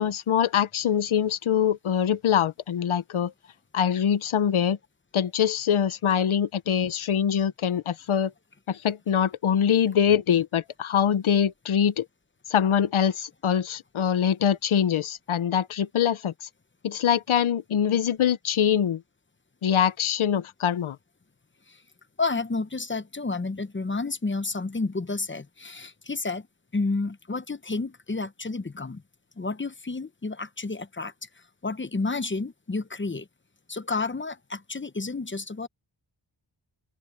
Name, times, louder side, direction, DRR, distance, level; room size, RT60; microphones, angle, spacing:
voice 1, 0.0-3.3 3.7-4.8 5.1-8.3 8.7-12.0 12.5-16.3 16.8-19.0 19.6-21.0, left 8 dB, 80° left, 0.9 m, -24 dB
voice 2, 22.2-26.5 26.7-29.0 29.4-31.1 31.6-33.3 33.7-35.7, left 3 dB, 25° left, 0.9 m, -30 dB
open air
wide cardioid pair, 90°, 48 cm